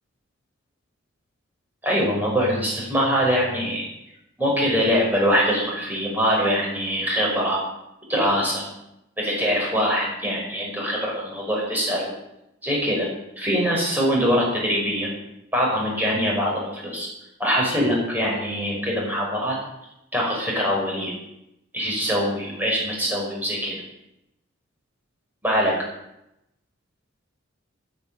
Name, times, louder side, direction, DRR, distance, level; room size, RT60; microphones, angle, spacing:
voice 1, 1.8-3.9 4.4-7.6 8.1-8.7 9.2-12.1 12.6-13.1 13.4-15.1 15.5-17.1 17.4-19.6 20.1-21.1 21.7-23.8 25.4-25.8, equal, 10° right, -3 dB, 5.8 m, -23 dB
10.5 x 10.5 x 9.3 m, 0.86 s
head